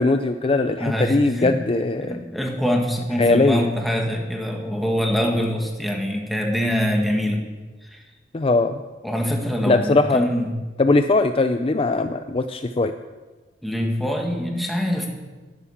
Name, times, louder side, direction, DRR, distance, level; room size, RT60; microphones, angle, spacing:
voice 1, 0.0-2.2 3.2-3.7 8.3-8.8 9.6-10.3 10.8-12.9, left 2 dB, 30° left, 9 dB, 0.4 m, -20 dB
voice 2, 0.8-1.5 2.0-7.4 7.8-8.0 9.0-10.5 13.6-15.1, equal, ahead, 1 dB, 1.9 m, -24 dB
12.0 x 11.5 x 7.2 m, 1.3 s
head